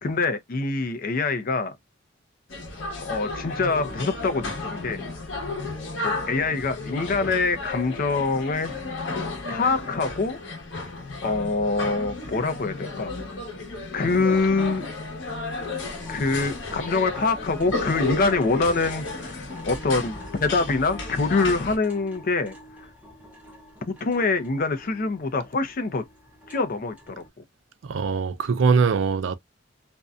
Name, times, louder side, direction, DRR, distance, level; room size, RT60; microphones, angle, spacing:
voice 1, 0.0-1.8 3.0-5.0 6.0-8.7 9.5-10.4 11.2-13.1 13.9-14.9 16.1-22.9 23.9-26.0 26.5-27.2, left 3 dB, 50° left, 0.5 m, -25 dB
sound 1, 2.5-21.8, left 3 dB, 85° left, 0.9 m, -33 dB
sound 2, 15.8-27.3, left 1 dB, 10° right, 0.7 m, -46 dB
voice 2, 27.8-29.4, right 5 dB, 80° right, 0.4 m, -22 dB
2.6 x 2.2 x 2.3 m
head